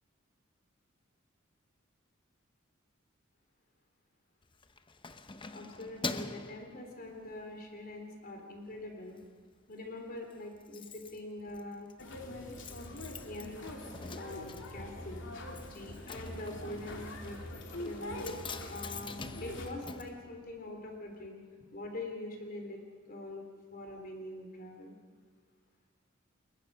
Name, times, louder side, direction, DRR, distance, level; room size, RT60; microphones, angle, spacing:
Keys jangling, 4.4-7.5 8.0-8.2 8.6-9.3 9.5-9.6 9.9-10.0 10.1-21.0 21.2-21.3, left 4 dB, 25° left, 0.8 m, -45 dB
voice 1, 5.5-9.2 9.7-11.9 13.2-13.6 14.2-15.2 15.7-17.4 17.8-18.4 18.7-21.4 21.7-22.8 23.1-23.4 23.7-24.9, left 2 dB, 45° left, 3 dB, 3.3 m, -44 dB
sound 1, 12.0-19.7, left 1 dB, 65° left, 3.0 m, -43 dB
30.0 x 21.0 x 5.5 m, 1.5 s
head